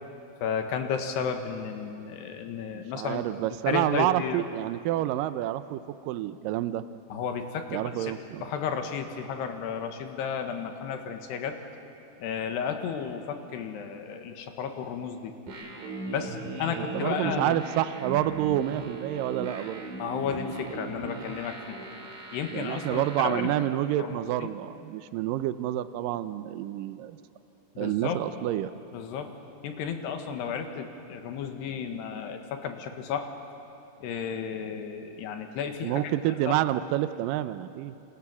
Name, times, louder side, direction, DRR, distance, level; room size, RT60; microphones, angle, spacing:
voice 1, 0.4-3.3 3.7-4.4 7.1-8.1 8.4-11.6 12.2-15.3 16.1-17.6 20.0-21.8 22.3-23.4 24.0-24.2 24.4-24.5 27.8-28.2 28.9-29.3 29.6-33.3 34.0-36.0 36.5-36.6, left 7 dB, 80° left, 6 dB, 3.7 m, -33 dB
voice 2, 2.7-6.8 7.7-8.5 16.7-19.8 22.5-27.2 27.8-28.7 35.8-37.9, right 13 dB, 85° right, 13 dB, 1.9 m, -28 dB
sound 1, 15.5-23.4, right 2 dB, 55° right, 4.4 m, -38 dB
29.0 x 26.5 x 7.2 m, 2.8 s
omnidirectional pair, 4.9 m